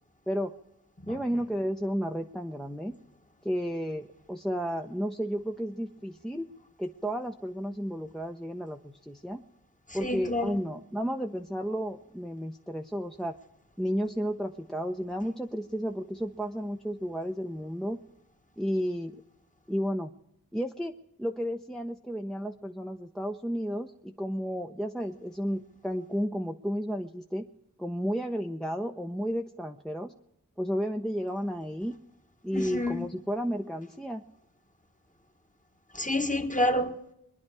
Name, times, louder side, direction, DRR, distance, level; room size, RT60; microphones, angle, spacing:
voice 1, 1.1-3.0 3.4-6.5 6.8-9.4 9.9-13.3 13.8-18.0 18.6-19.2 19.7-20.1 20.5-20.9 21.2-27.5 27.8-30.1 30.6-32.0 32.4-34.2, equal, ahead, 0.8 m, -32 dB
voice 2, 10.0-10.6 32.5-33.1 35.9-37.0, left 1 dB, 20° left, 1.5 m, -28 dB
23.5 x 10.5 x 4.8 m
wide cardioid pair, 45°, 38 cm